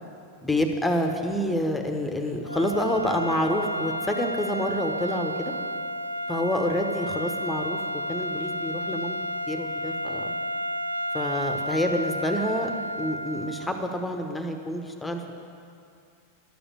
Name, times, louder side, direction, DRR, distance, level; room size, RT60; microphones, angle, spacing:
voice 1, 0.4-5.5 6.3-7.8 8.1-9.2 9.5-10.3 11.1-12.7 13.0-15.3, left 1 dB, 5° left, 4 dB, 1.0 m, -28 dB
sound 1, 2.4-14.0, equal, 90° left, 0.4 m, -32 dB
12.0 x 7.0 x 8.7 m, 2.5 s
figure-of-eight pair, 90°, 0 cm